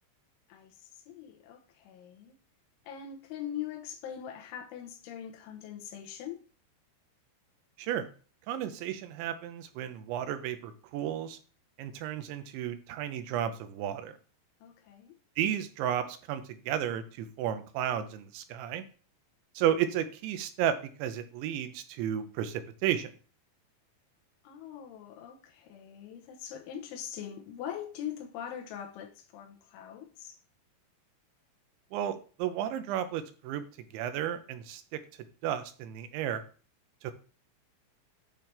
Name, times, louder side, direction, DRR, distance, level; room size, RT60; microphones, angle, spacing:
voice 1, 0.5-2.4 2.9-6.4 14.6-15.2 19.6-19.7 24.4-30.4, left 9 dB, 85° left, 3.4 m, -42 dB
voice 2, 7.8-8.1 8.5-11.4 11.8-14.2 15.4-18.8 19.6-23.1 31.9-33.6 33.9-35.0 35.4-36.4 37.0-37.1, right 10 dB, 80° right, 3.0 m, -33 dB
9.1 x 3.3 x 5.7 m
omnidirectional pair, 5.5 m